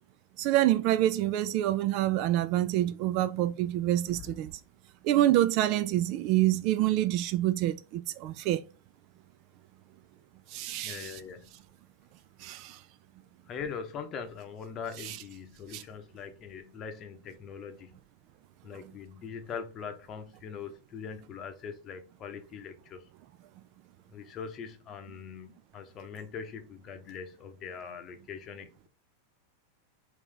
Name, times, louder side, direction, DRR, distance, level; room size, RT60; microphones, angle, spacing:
voice 1, 0.4-4.5 5.0-8.6 10.5-11.1 12.4-12.8 15.1-15.2 15.7-15.8, right 14 dB, 45° right, 0.3 m, -27 dB
voice 2, 10.8-11.5 13.5-18.0 18.6-23.1 24.1-28.9, left 6 dB, 30° left, 0.8 m, -42 dB
3.9 x 2.8 x 3.3 m
figure-of-eight pair, 90°, 0 cm